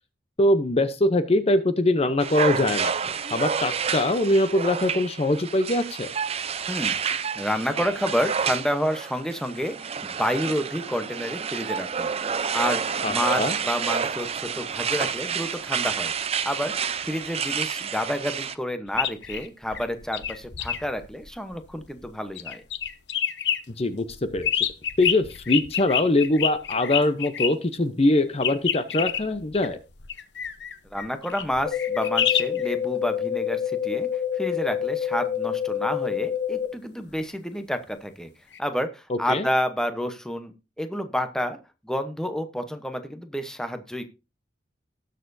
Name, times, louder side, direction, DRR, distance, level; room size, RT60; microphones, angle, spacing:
voice 1, 0.4-2.9 3.3-6.1 13.0-13.5 23.8-24.5 25.0-29.8 39.1-39.4, left 1 dB, 35° left, 11 dB, 0.7 m, -23 dB
sound 1, 2.2-18.5, right 6 dB, 35° right, 0.5 m, -29 dB
voice 2, 6.7-9.8 10.0-12.1 12.5-12.8 13.1-16.1 16.4-22.6 30.9-38.3 38.6-41.6 41.8-44.1, equal, 5° left, 8 dB, 0.9 m, -29 dB
sound 2, 18.9-22.1 22.4-23.6 24.1-27.5 28.4-32.7 38.5-38.6, left 9 dB, 80° left, 0.8 m, -28 dB
sound 3, 31.7-36.7, left 9 dB, 60° left, 1.8 m, -27 dB
19.0 x 6.7 x 2.6 m, 0.29 s
head